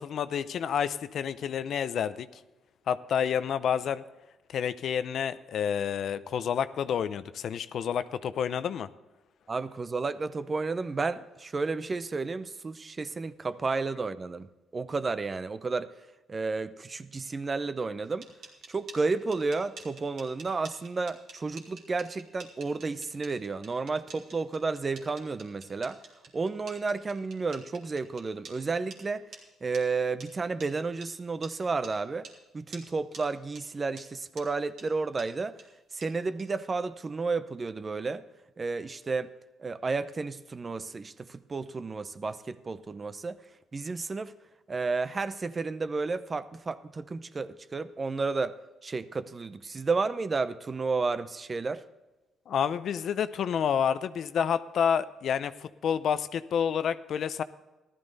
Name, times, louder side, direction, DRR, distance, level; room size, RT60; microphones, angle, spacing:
voice 1, 0.0-2.3 2.9-4.0 4.5-8.9 52.5-57.4, left 8 dB, 65° left, 0.6 m, -29 dB
voice 2, 9.5-14.5 14.7-15.9 16.3-18.3 18.7-26.0 26.3-32.3 32.5-35.6 35.9-38.2 38.6-39.3 39.6-43.4 43.7-44.3 44.7-48.5 48.8-51.8, right 4 dB, 30° right, 0.6 m, -32 dB
sound 1, 18.0-28.6 28.9-29.0 29.3-29.4 29.7-29.8 30.2-30.3 30.6-30.7 31.0-31.1 31.4-31.5 31.8-31.9 32.2-32.4 32.7-32.9 33.1-33.2 33.6-33.7 34.0-34.1 34.4-34.5 34.8-34.9 35.2-35.3 35.6-35.7 36.0-36.1 36.4-36.5, right 4 dB, 70° right, 2.6 m, -47 dB
15.0 x 12.5 x 4.0 m
cardioid pair, 90°, 0 cm